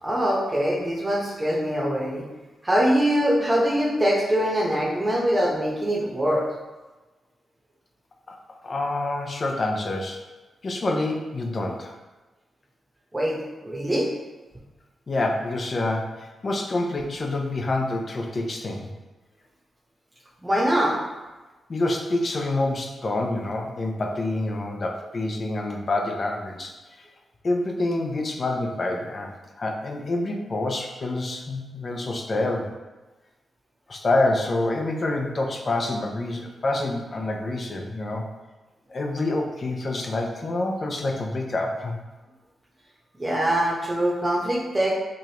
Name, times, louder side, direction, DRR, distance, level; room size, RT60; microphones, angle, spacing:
voice 1, 0.0-2.2 2.6-6.5 13.1-14.1 20.4-21.0 43.2-45.0, equal, 20° right, -3 dB, 0.9 m, -23 dB
voice 2, 8.6-10.2 10.6-11.9 15.1-18.9 21.7-27.1 27.4-32.7 33.9-38.3 38.9-42.0, left 2 dB, 45° left, 1 dB, 0.6 m, -27 dB
4.8 x 2.4 x 2.9 m, 1.2 s
cardioid pair, 65°, 0 cm